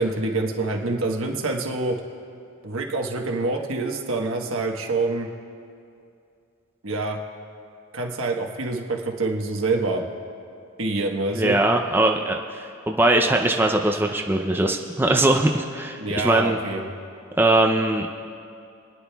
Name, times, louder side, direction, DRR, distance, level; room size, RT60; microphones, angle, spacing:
voice 1, 0.0-2.0 2.6-5.3 6.8-7.2 7.9-10.0 10.8-11.6 16.0-16.8, right 2 dB, 85° right, 1 dB, 1.3 m, -26 dB
voice 2, 11.4-16.0 16.2-16.6 17.4-18.1, right 2 dB, 10° right, 2 dB, 0.5 m, -21 dB
30.0 x 9.9 x 2.3 m, 2.6 s
head